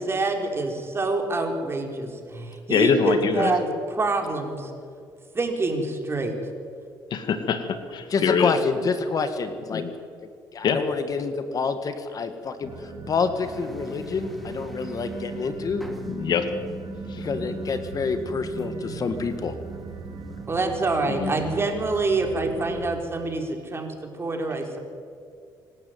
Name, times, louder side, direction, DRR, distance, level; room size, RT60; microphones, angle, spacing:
voice 1, 0.0-4.7 5.3-6.5 20.5-24.8, right 3 dB, 30° right, 3 dB, 4.2 m, -26 dB
voice 2, 2.7-3.5 7.1-8.5 9.7-9.9 10.6-10.8 16.1-16.5 17.1-17.2 21.1-21.3, left 6 dB, 60° left, 9 dB, 1.9 m, -24 dB
voice 3, 8.1-9.8 10.2-15.8 17.2-19.5, left 5 dB, 45° left, 9 dB, 1.8 m, -28 dB
sound 1, 12.6-22.9, right 5 dB, 55° right, 2.9 m, -39 dB
sound 2, 13.4-20.6, equal, ahead, 2.9 m, -41 dB
24.5 x 12.5 x 9.4 m, 2.4 s
cardioid pair, 80°, 8 cm